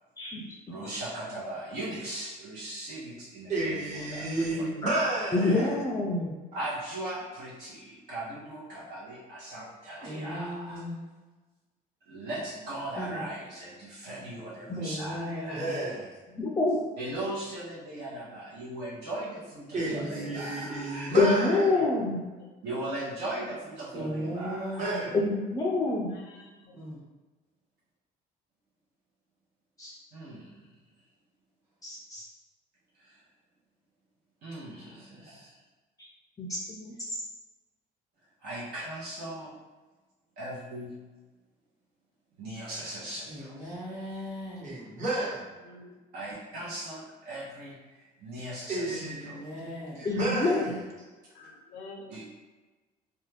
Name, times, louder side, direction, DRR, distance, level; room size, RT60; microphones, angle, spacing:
voice 1, 0.2-0.5 0.9-1.0 4.8-4.9 5.3-6.3 14.7-14.8 16.3-16.8 21.2-22.2 25.1-26.1 29.8-29.9 31.8-32.2 36.4-36.9 50.0-50.7, left 3 dB, 20° left, -3 dB, 0.4 m, -27 dB
voice 2, 0.7-4.7 5.3-5.7 6.5-10.8 12.1-15.6 17.0-21.1 22.6-25.1 30.1-30.7 33.0-33.2 34.4-35.5 38.4-39.5 40.4-40.9 42.4-43.6 46.1-49.4 52.1-52.3, right 1 dB, 70° right, -7 dB, 0.8 m, -38 dB
voice 3, 3.5-5.6 14.6-14.8 15.5-16.1 19.7-21.9 24.8-25.1 44.6-45.4 48.7-49.3 50.0-50.8, right 2 dB, 45° right, -6 dB, 1.1 m, -31 dB
voice 4, 10.0-11.0 12.9-13.3 14.7-15.8 19.9-20.7 23.9-25.1 26.7-27.0 34.8-35.5 43.3-44.8 48.9-50.1, equal, 15° right, -11 dB, 1.1 m, -38 dB
voice 5, 22.2-22.6 26.1-26.8 45.6-46.0 51.3-52.2, left 2 dB, 80° left, 2 dB, 0.6 m, -48 dB
2.6 x 2.2 x 3.2 m, 1.2 s
cardioid pair, 110°, 17 cm